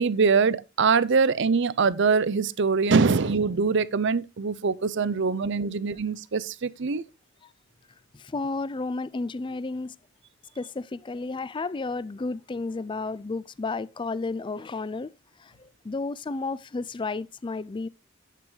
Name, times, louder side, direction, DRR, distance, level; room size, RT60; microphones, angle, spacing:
voice 1, 0.0-7.0, right 5 dB, 60° right, 0.6 m, -23 dB
voice 2, 8.1-10.0 10.6-15.1 15.4-17.9, left 3 dB, 25° left, 0.4 m, -32 dB
10.5 x 8.5 x 3.2 m
head